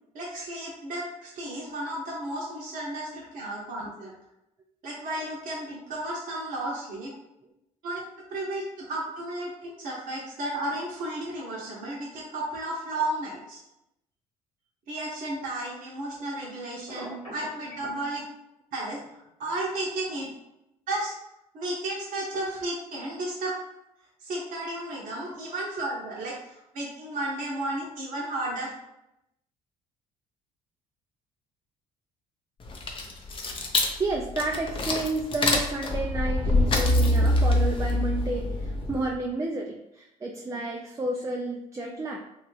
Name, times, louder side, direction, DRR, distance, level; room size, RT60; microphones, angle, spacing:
voice 1, 0.1-4.1 4.8-7.1 7.8-8.0 8.3-13.6 14.9-18.2 18.7-20.3 20.9-21.1 21.5-23.6 24.2-28.7, right 1 dB, 45° right, -4 dB, 0.8 m, -33 dB
Telephone, 16.9-18.0, left 1 dB, 90° left, 1.1 m, -41 dB
sound 1, 32.6-39.2, left 1 dB, 25° left, 0.6 m, -25 dB
voice 2, 34.0-42.2, right 2 dB, 15° right, 0 dB, 0.4 m, -31 dB
2.8 x 2.3 x 3.0 m, 0.86 s
figure-of-eight pair, 50°, 19 cm